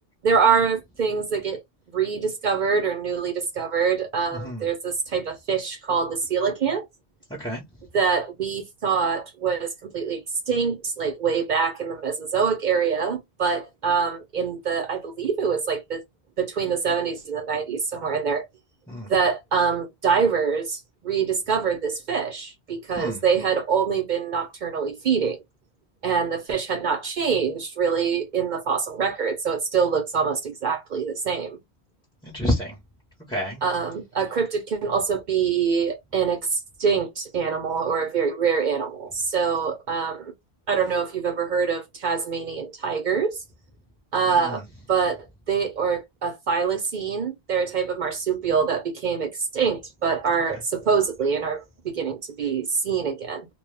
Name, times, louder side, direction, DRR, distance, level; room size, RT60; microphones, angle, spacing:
voice 1, 0.2-1.6 1.9-6.9 7.9-16.0 16.4-18.5 19.1-25.4 26.0-31.6 33.6-40.3 40.7-43.4 44.1-44.6 44.9-45.2 45.5-53.5, right 6 dB, 55° right, 0.5 m, -25 dB
voice 2, 4.3-4.7 7.3-7.6 18.9-19.1 23.0-23.2 32.2-32.8 33.3-33.6 44.2-44.6 50.5-50.6, equal, 5° left, 0.6 m, -29 dB
2.2 x 2.1 x 3.1 m
omnidirectional pair, 1.1 m